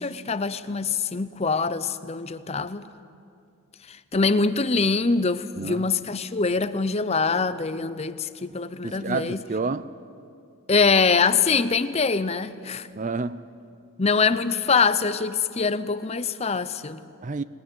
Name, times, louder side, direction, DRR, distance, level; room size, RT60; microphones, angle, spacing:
voice 1, 0.0-2.8 3.9-9.4 10.7-12.9 14.0-17.0, left 4 dB, 30° left, 0.6 m, -24 dB
voice 2, 8.8-9.9 12.9-13.5 17.2-17.4, right 3 dB, 35° right, 0.5 m, -29 dB
20.0 x 19.5 x 9.6 m
head